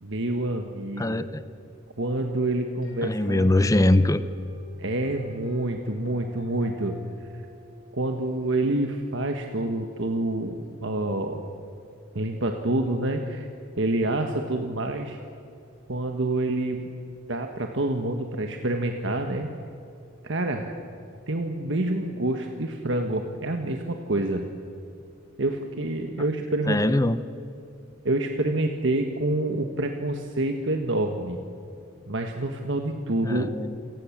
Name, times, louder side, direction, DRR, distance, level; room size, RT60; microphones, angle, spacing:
voice 1, 0.0-1.2 2.0-3.5 4.8-7.0 7.3-7.4 7.9-11.4 12.1-13.5 13.8-15.2 15.9-16.9 17.3-19.5 20.2-20.7 21.3-24.4 25.4-26.8 28.0-31.4 32.0-33.5, right 2 dB, 65° right, 4 dB, 1.5 m, -27 dB
voice 2, 1.0-1.4 3.0-4.2 26.7-27.2 33.2-33.8, left 1 dB, 15° left, 13 dB, 0.6 m, -22 dB
sound 1, 2.8-9.9, left 1 dB, 85° left, 6.4 m, -49 dB
28.0 x 19.0 x 7.4 m, 2.6 s
head